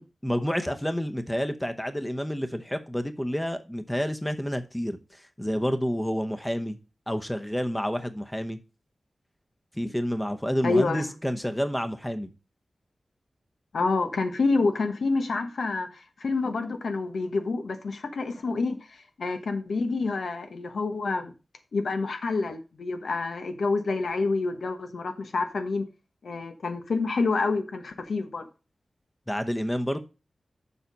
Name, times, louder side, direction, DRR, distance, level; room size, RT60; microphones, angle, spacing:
voice 1, 0.2-6.8 7.1-8.6 9.7-12.3 29.3-30.0, equal, 5° left, 0.8 m, -29 dB
voice 2, 10.6-11.1 13.7-21.3 21.7-25.8 26.2-28.5, left 3 dB, 85° left, 1.2 m, -28 dB
7.0 x 5.8 x 5.2 m
wide cardioid pair, 105°, 0 cm